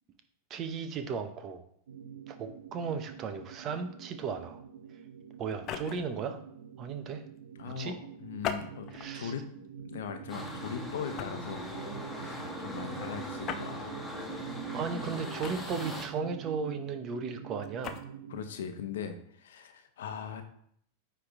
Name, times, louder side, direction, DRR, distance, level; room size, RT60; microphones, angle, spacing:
voice 1, 0.5-1.6 2.3-4.6 5.4-6.4 6.8-7.2 7.7-7.9 8.9-9.3 14.7-18.1, right 5 dB, 40° right, 8 dB, 0.9 m, -36 dB
sound 1, 1.9-18.5, right 9 dB, 70° right, 0.6 m, -45 dB
sound 2, 5.5-6.2 8.4-9.2 9.8-10.0 11.2-11.5 13.4-13.7 15.4-16.0 17.6-18.0, left 8 dB, 40° left, 0.7 m, -38 dB
voice 2, 7.6-7.9 8.2-9.4 9.8-11.6 12.1-13.9 18.3-20.4, left 7 dB, 70° left, 7 dB, 0.9 m, -40 dB
sound 3, 10.3-16.1, left 1 dB, 5° left, 1.8 m, -40 dB
9.3 x 3.4 x 3.7 m, 0.66 s
hypercardioid pair, 95°, 0 cm